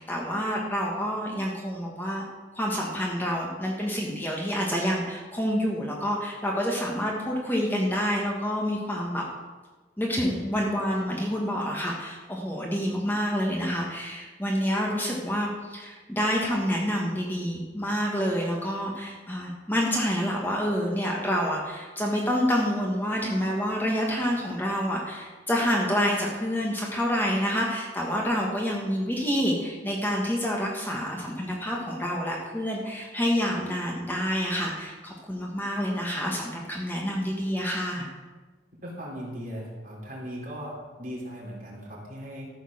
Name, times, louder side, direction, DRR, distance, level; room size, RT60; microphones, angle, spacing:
voice 1, 0.0-2.2 2.5-9.2 10.0-38.1, equal, 10° left, -2 dB, 1.5 m, -28 dB
voice 2, 38.8-42.5, equal, 45° right, -4 dB, 3.7 m, -38 dB
14.0 x 6.5 x 6.6 m, 1.3 s
head